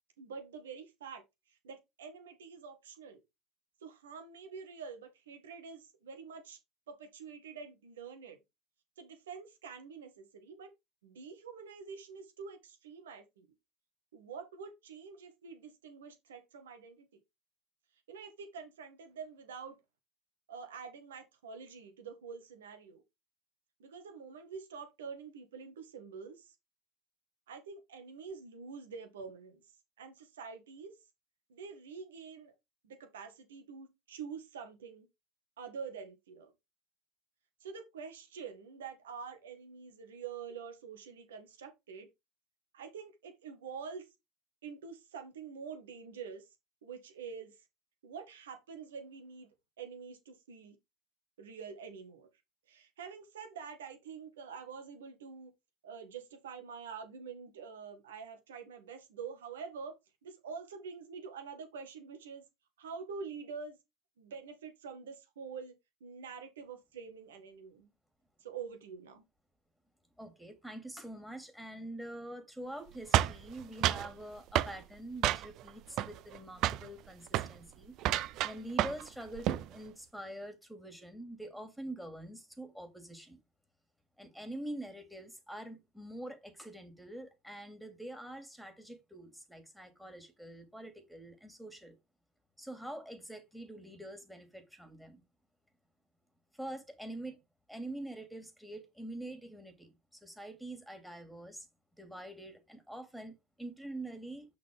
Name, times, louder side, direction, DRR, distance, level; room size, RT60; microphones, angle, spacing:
voice 1, 0.2-3.2 3.8-6.6 6.9-8.4 9.0-10.7 11.0-13.5 14.1-17.2 18.1-19.8 20.5-23.0 23.8-26.6 27.5-29.6 30.0-30.9 31.5-32.5 32.8-35.1 35.6-36.5 37.6-42.1 42.7-44.1 44.6-46.5 46.8-47.7 48.0-49.5 49.8-50.8 51.4-52.3 52.7-55.5 55.8-59.9 60.2-62.4 62.8-63.8 64.2-65.7 66.0-67.9 68.4-69.2, right 6 dB, 85° right, 2.1 m, -46 dB
voice 2, 70.2-77.9 78.4-83.4 84.2-91.9 92.6-95.2 96.5-97.4 97.7-101.7 102.0-104.4, right 1 dB, ahead, 2.7 m, -45 dB
sound 1, 73.1-74.1 74.5-74.8 75.2-75.7 76.0-76.4 76.6-76.9 77.3-77.5 78.0-79.1 79.3-79.7, right 13 dB, 55° right, 0.6 m, -30 dB
6.2 x 5.8 x 3.8 m
hypercardioid pair, 85°, 0 cm